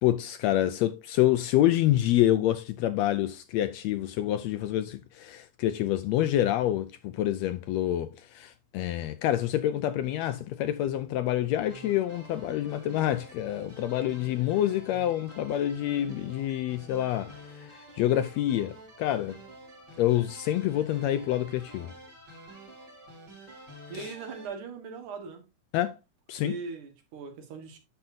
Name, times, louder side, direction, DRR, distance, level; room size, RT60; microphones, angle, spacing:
voice 1, 0.0-19.4 20.0-21.9 23.9-24.1 25.7-26.0 26.3-26.5, left 13 dB, 80° left, 1.6 m, -27 dB
sound 1, 11.7-24.5, right 1 dB, 35° right, 2.9 m, -49 dB
voice 2, 23.9-25.4 26.4-27.8, right 4 dB, 80° right, 3.0 m, -39 dB
9.1 x 6.9 x 2.7 m
omnidirectional pair, 3.4 m